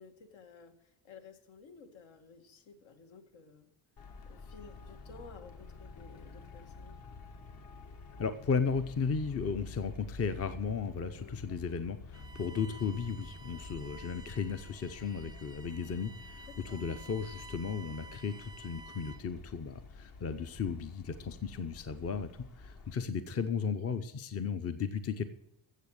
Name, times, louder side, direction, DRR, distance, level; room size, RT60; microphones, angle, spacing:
voice 1, 0.0-3.7 4.3-7.0 11.2-11.4 16.4-16.9, left 5 dB, 70° left, 6 dB, 2.0 m, -54 dB
Traffic noise roadway noise, 4.0-22.9, left 3 dB, 50° left, 1.5 m, -50 dB
voice 2, 8.2-22.3 22.6-25.2, left 5 dB, 30° left, 11 dB, 0.7 m, -35 dB
Bowed string instrument, 12.1-19.4, right 2 dB, 10° right, 0.5 m, -52 dB
14.5 x 7.5 x 6.5 m, 0.81 s
cardioid pair, 145°, 47 cm